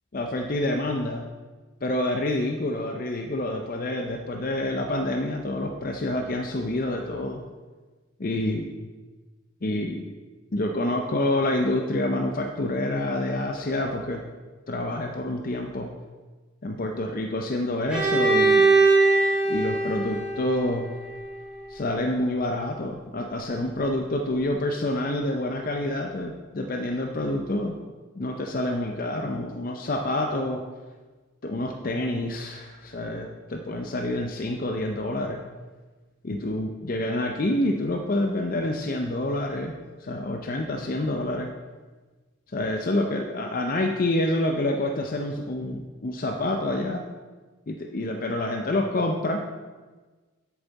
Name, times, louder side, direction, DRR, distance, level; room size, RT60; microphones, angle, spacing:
voice 1, 0.1-1.2 1.8-7.4 8.2-8.7 9.6-10.1 10.5-14.2 14.7-15.9 16.6-18.7 19.5-20.9 21.7-27.8 28.1-30.6 31.4-35.4 36.2-39.7 40.0-41.5 42.5-47.0 47.7-49.4, left 1 dB, 45° left, 3 dB, 0.5 m, -27 dB
Bowed string instrument, 17.9-21.7, right 3 dB, 5° right, 2.1 m, -22 dB
8.1 x 7.0 x 4.0 m, 1.3 s
head